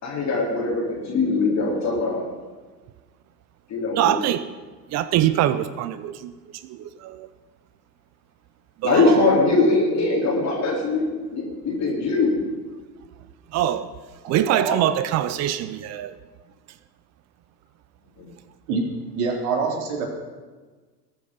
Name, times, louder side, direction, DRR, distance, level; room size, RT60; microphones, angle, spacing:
voice 1, 0.0-2.2 3.7-4.2 8.8-12.4 18.2-18.3, left 3 dB, 30° left, -5 dB, 4.3 m, -21 dB
voice 2, 3.9-4.5 4.9-7.3 8.8-9.3 13.5-13.9 14.3-16.2, right 12 dB, 30° right, 14 dB, 0.7 m, -24 dB
voice 3, 14.2-14.8 18.7-18.8 19.2-20.1, right 5 dB, 55° right, 0 dB, 3.9 m, -25 dB
21.0 x 8.3 x 5.6 m, 1.3 s
figure-of-eight pair, 80°, 50 cm